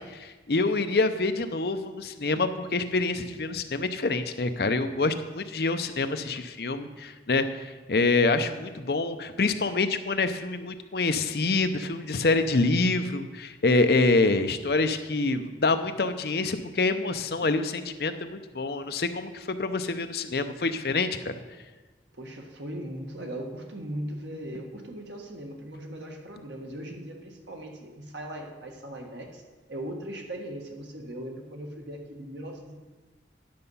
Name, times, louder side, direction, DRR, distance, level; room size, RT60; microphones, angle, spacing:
voice 1, 0.0-21.4, left 3 dB, 60° left, 9 dB, 0.6 m, -26 dB
voice 2, 22.1-29.4 29.7-32.8, right 1 dB, 90° right, 2 dB, 1.5 m, -39 dB
10.5 x 6.8 x 5.5 m, 1.2 s
head